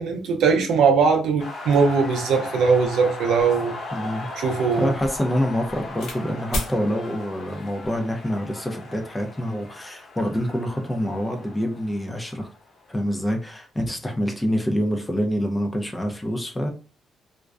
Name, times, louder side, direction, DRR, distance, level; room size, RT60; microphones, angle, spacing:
voice 1, 0.0-3.8 4.3-4.9, right 5 dB, 85° right, 0.5 m, -20 dB
sound 1, 1.4-13.1, left 2 dB, 55° left, 0.6 m, -38 dB
sound 2, 3.4-6.2 6.5-6.8 7.6-8.0, equal, 80° left, 0.9 m, -35 dB
voice 2, 3.9-4.3 4.8-12.5 12.9-16.7, equal, 15° left, 0.5 m, -26 dB
2.5 x 2.1 x 2.3 m
cardioid pair, 95°, 0 cm